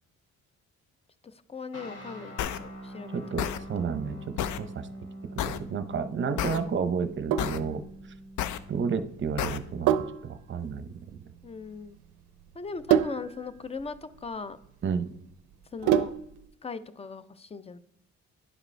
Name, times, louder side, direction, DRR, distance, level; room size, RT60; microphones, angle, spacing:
voice 1, 1.2-3.9 6.4-6.8 11.4-12.0 12.5-14.6 15.7-16.1 16.6-17.8, left 4 dB, 20° left, 14 dB, 0.4 m, -39 dB
sound 1, 1.7-10.0, right 1 dB, 55° left, 1.9 m, -44 dB
sound 2, 2.4-2.6 3.4-3.6 4.4-4.6 5.4-5.6 6.4-6.6 7.4-7.6 8.4-8.6 9.4-9.6, left 11 dB, 75° left, 0.5 m, -30 dB
voice 2, 3.1-4.9 5.5-7.8 8.7-11.2 14.8-15.1, right 6 dB, 40° right, 12 dB, 0.6 m, -31 dB
Sink (filling or washing), 7.0-16.5, right 10 dB, 80° right, 0.5 m, -30 dB
11.0 x 5.0 x 3.2 m, 0.78 s
cardioid pair, 90°, 30 cm